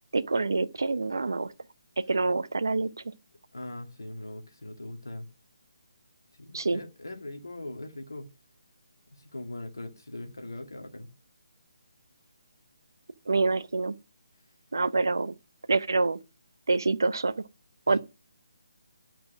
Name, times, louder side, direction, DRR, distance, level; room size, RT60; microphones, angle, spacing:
voice 1, 0.1-1.5 2.1-3.1 6.5-6.8 13.3-13.9 14.7-15.3 15.7-16.2 16.7-17.3 17.9-18.0, right 3 dB, 70° right, 0.8 m, -26 dB
voice 2, 3.5-5.3 6.4-8.3 9.1-11.1 17.9-18.0, left 1 dB, 75° left, 2.4 m, -40 dB
11.5 x 6.0 x 6.3 m
figure-of-eight pair, 150°, 2 cm